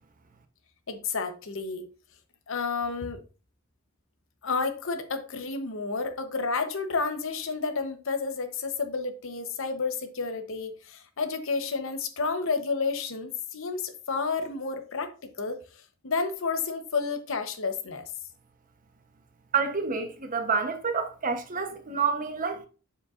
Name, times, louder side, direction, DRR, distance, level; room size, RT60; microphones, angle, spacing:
voice 1, 0.9-1.9 2.5-3.2 4.4-15.1 15.4-15.6 16.0-18.0, left 4 dB, 65° left, 0.9 m, -30 dB
voice 2, 19.5-22.7, right 5 dB, 40° right, 0.9 m, -28 dB
7.3 x 6.9 x 2.5 m
head